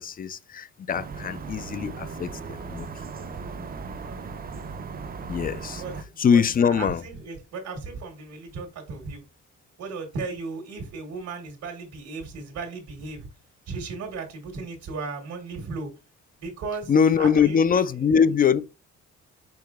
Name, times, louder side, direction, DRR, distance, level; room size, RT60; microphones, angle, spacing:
voice 1, 0.0-3.0 5.3-5.8 6.2-7.0 16.9-18.6, left 7 dB, 30° left, 0.4 m, -22 dB
sound 1, 0.9-6.0, right 5 dB, 30° right, 0.5 m, -37 dB
voice 2, 4.0-4.3 5.8-5.9 6.3-9.2 9.8-13.3 13.7-15.9 16.4-16.9 17.2-17.6, right 4 dB, 80° right, 1.4 m, -36 dB
4.7 x 4.3 x 2.4 m
cardioid pair, 90°, 30 cm